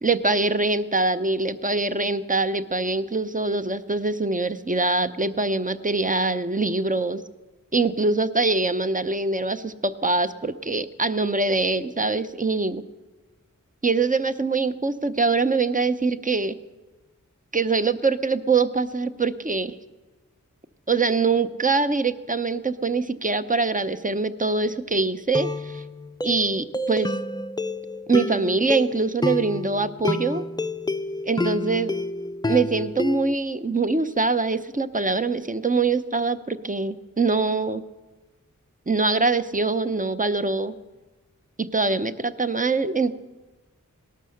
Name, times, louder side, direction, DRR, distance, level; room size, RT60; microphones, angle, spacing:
voice 1, 0.0-7.2 7.7-12.8 13.8-16.6 17.5-19.8 20.9-25.8 26.2-27.1 28.1-30.4 31.2-31.9 32.4-37.8 38.9-40.7 41.6-43.1, right 3 dB, 25° right, 11 dB, 0.7 m, -23 dB
sound 1, 24.4-24.7 25.3-33.4, left 2 dB, 15° left, 0.5 m, -29 dB
18.0 x 12.0 x 6.5 m, 1.2 s
wide cardioid pair, 70°, 33 cm